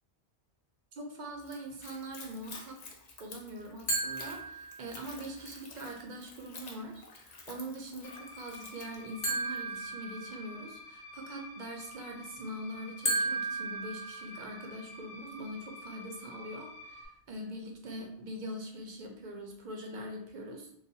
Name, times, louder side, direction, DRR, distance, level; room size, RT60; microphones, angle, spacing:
voice 1, 0.9-2.8 3.2-20.7, right 1 dB, 60° right, 1 dB, 0.5 m, -43 dB
Splash splatter / Trickle dribble, 1.4-9.7, left 4 dB, 60° left, 0.4 m, -51 dB
sound 1, 3.9-5.2 9.2-10.8 13.1-14.8, right 2 dB, 45° left, 0.8 m, -35 dB
sound 2, 8.0-17.1, left 2 dB, 90° left, 0.9 m, -49 dB
3.2 x 2.1 x 2.6 m, 0.69 s
omnidirectional pair, 1.2 m